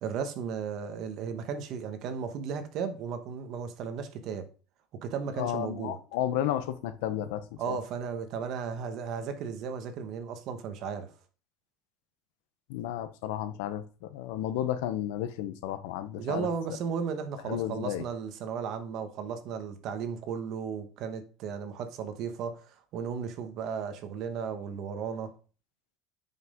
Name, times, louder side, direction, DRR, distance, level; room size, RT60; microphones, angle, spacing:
voice 1, 0.0-4.5 5.0-6.0 7.6-11.1 16.2-22.6 22.9-25.3, right 6 dB, 50° right, 1.3 m, -35 dB
voice 2, 5.4-7.8 12.7-16.5 17.5-18.0, left 11 dB, 80° left, 0.9 m, -32 dB
9.5 x 5.6 x 3.7 m
cardioid pair, 160°, 0 cm